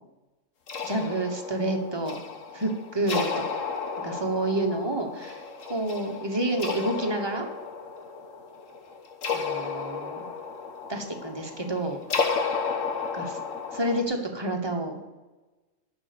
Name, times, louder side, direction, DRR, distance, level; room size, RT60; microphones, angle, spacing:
sound 1, 0.7-14.0, left 5 dB, 80° left, 1.5 m, -33 dB
voice 1, 0.8-2.2 2.5-3.3 4.0-5.4 5.7-7.5 9.3-10.3 10.9-12.0 13.1-13.4 13.7-15.0, right 1 dB, 20° right, 3 dB, 1.2 m, -29 dB
11.0 x 5.1 x 6.7 m, 1.2 s
omnidirectional pair, 1.3 m